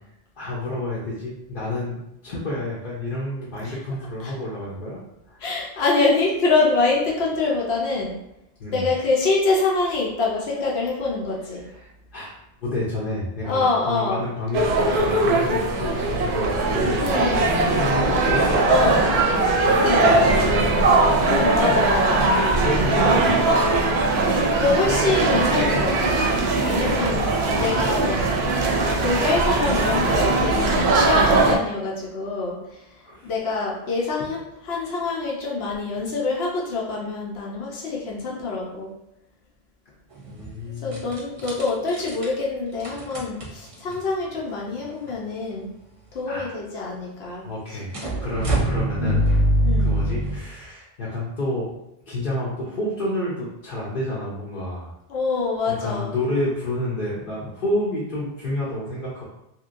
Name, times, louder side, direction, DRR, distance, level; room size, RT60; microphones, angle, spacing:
voice 1, 0.4-5.0 5.3-5.4 8.6-8.9 11.6-12.3 12.6-17.1 17.4-20.9 22.6-23.4 33.0-33.3 40.3-41.1 46.3-46.5 47.4-49.2 49.8-51.7 52.1-54.9 55.7-59.2, left 1 dB, 60° left, -7 dB, 0.8 m, -29 dB
voice 2, 3.6-4.4 5.4-8.1 8.7-11.6 13.4-14.2 16.9-17.4 18.7-19.1 19.8-20.1 21.2-22.2 23.0-23.2 24.1-26.2 26.6-28.5 28.8-32.9 33.2-38.9 40.8-45.7 46.1-48.2 49.0-49.3 49.6-49.9 55.1-56.1, left 3 dB, 85° left, -4 dB, 1.0 m, -25 dB
sound 1, 14.5-31.6, right 2 dB, 85° right, 0.8 m, -20 dB
sound 2, 40.1-40.5 40.9-42.3 42.8-44.0 44.8-44.9 45.1-45.2 47.9-50.4, equal, 40° right, 0.6 m, -23 dB
2.9 x 2.7 x 2.5 m, 0.84 s
omnidirectional pair, 1.0 m